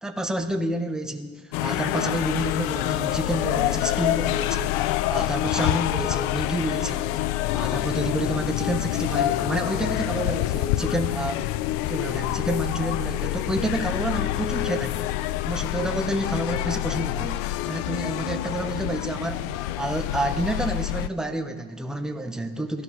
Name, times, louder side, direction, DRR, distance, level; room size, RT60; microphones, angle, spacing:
voice 1, 0.0-7.2 7.5-11.5 11.9-15.1 15.4-22.8, right 1 dB, ahead, 4 dB, 0.6 m, -29 dB
sound 1, 1.5-21.1, left 15 dB, 80° left, 0.5 m, -27 dB
21.5 x 11.5 x 3.0 m, 1.4 s
cardioid pair, 170°, 35 cm